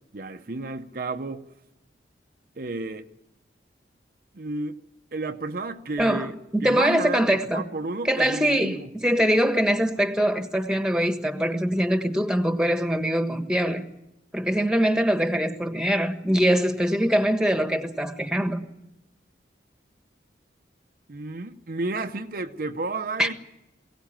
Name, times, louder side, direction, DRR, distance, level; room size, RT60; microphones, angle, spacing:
voice 1, 0.1-1.5 2.6-3.1 4.3-4.8 5.1-8.9 21.1-23.3, right 3 dB, 50° right, 0.7 m, -32 dB
voice 2, 6.0-7.6 8.0-13.9 14.3-18.7 23.2-23.3, equal, 5° right, 1.3 m, -23 dB
22.5 x 17.5 x 8.9 m
head